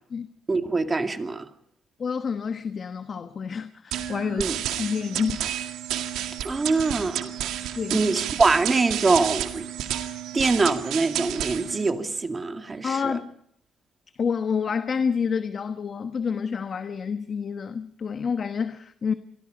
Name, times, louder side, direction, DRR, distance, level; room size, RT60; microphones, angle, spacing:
voice 1, 0.5-1.5 4.4-4.6 6.4-7.3 7.9-9.7 10.3-13.2, right 3 dB, 30° right, 2.2 m, -24 dB
voice 2, 2.0-5.4 7.8-8.0 12.8-13.3 14.2-19.1, left 6 dB, 50° left, 1.2 m, -28 dB
sound 1, 3.9-11.9, right 11 dB, 90° right, 2.1 m, -31 dB
29.0 x 23.0 x 5.2 m
cardioid pair, 90°, 0 cm